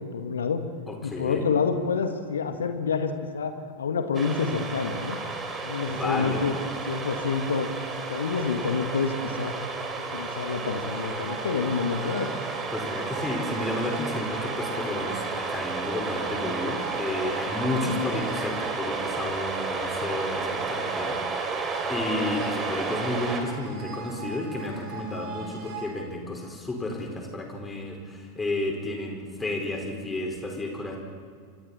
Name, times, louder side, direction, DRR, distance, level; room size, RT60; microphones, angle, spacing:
voice 1, 0.1-0.6 1.0-5.2 5.6-6.5 6.9-9.5 10.0-12.3 17.7-18.0, left 5 dB, 70° left, 7 dB, 1.7 m, -28 dB
voice 2, 0.9-1.5 5.9-6.5 12.7-21.5 21.9-31.0, left 2 dB, 10° left, 1 dB, 4.8 m, -32 dB
sound 1, 4.1-23.4, right 4 dB, 20° right, 3.1 m, -32 dB
sound 2, 10.9-25.9, right 6 dB, 40° right, 5.8 m, -40 dB
28.5 x 25.0 x 4.3 m, 2.1 s
figure-of-eight pair, 90°, 0 cm